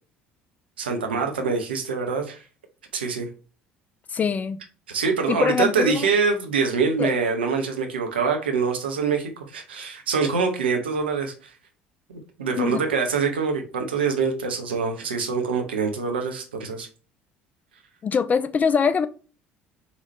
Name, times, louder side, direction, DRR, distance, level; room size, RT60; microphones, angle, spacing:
voice 1, 0.8-2.4 2.9-3.3 4.9-11.3 12.1-16.9, right 5 dB, 80° right, 0.8 m, -25 dB
voice 2, 4.1-4.6 5.3-6.1 7.0-7.1 12.6-12.8 18.0-19.1, left 6 dB, 30° left, 0.4 m, -23 dB
4.0 x 3.0 x 4.0 m
figure-of-eight pair, 60°, 6 cm